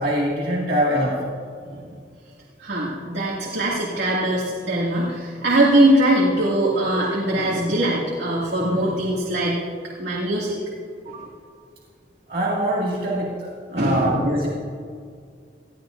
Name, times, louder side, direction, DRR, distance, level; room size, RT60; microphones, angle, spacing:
voice 1, 0.0-1.3 11.1-11.2 12.3-14.5, equal, 55° right, -6 dB, 2.0 m, -23 dB
voice 2, 2.6-9.6 10.0-10.6 11.2-11.3 13.8-14.3, right 1 dB, 75° right, -5 dB, 2.2 m, -21 dB
19.5 x 14.0 x 2.6 m, 2.1 s
head